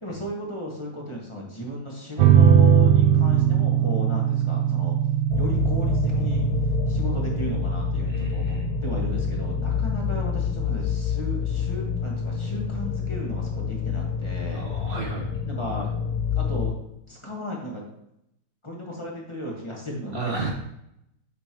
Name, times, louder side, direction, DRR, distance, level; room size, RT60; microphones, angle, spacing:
voice 1, 0.0-4.9 5.4-6.5 6.9-14.6 15.4-15.9 16.3-16.7 17.1-17.8 18.6-20.4, equal, 15° left, -3 dB, 1.4 m, -34 dB
sound 1, 2.2-13.2, right 8 dB, 80° right, 1.4 m, -22 dB
sound 2, 5.3-16.7, left 8 dB, 90° left, 1.5 m, -28 dB
voice 2, 8.1-8.7 14.5-15.3 20.1-20.5, right 2 dB, 30° right, -1 dB, 1.2 m, -32 dB
8.3 x 5.6 x 3.0 m, 0.79 s
omnidirectional pair, 2.3 m